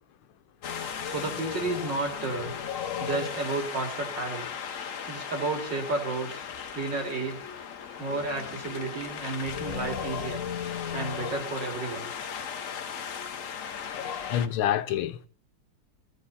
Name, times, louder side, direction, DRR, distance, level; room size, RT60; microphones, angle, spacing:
Wind, 0.6-14.5, left 7 dB, 50° left, 1.0 m, -36 dB
voice 1, 1.0-2.5 3.0-4.5 5.1-6.5 6.7-7.4 8.0-10.4 10.9-12.1, right 3 dB, 55° right, 3.4 m, -32 dB
voice 2, 14.3-15.3, left 11 dB, 85° left, 1.7 m, -27 dB
17.0 x 15.0 x 4.2 m
omnidirectional pair, 2.3 m